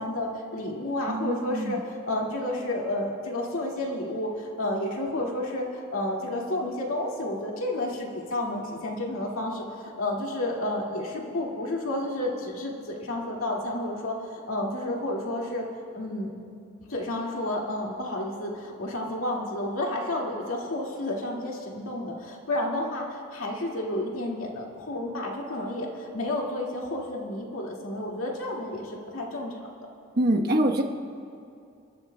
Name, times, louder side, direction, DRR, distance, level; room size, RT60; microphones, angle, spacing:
voice 1, 0.0-15.7 15.9-16.3 16.9-29.5, left 1 dB, 85° left, -2 dB, 2.1 m, -31 dB
voice 2, 1.1-1.8 30.2-30.8, right 1 dB, 50° right, 2 dB, 1.1 m, -24 dB
28.0 x 12.5 x 2.2 m, 2.4 s
head